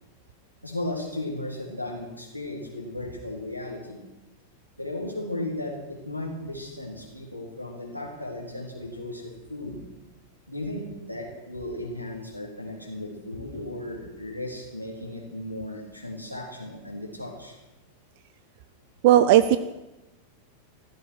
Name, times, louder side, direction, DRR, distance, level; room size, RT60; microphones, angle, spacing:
voice 1, 0.6-4.0 4.8-9.8 10.5-17.6, left 1 dB, 90° right, 0 dB, 4.0 m, -35 dB
voice 2, 19.0-19.6, right 12 dB, 50° right, 13 dB, 0.6 m, -16 dB
15.5 x 14.0 x 6.5 m, 0.99 s
figure-of-eight pair, 90°, 0 cm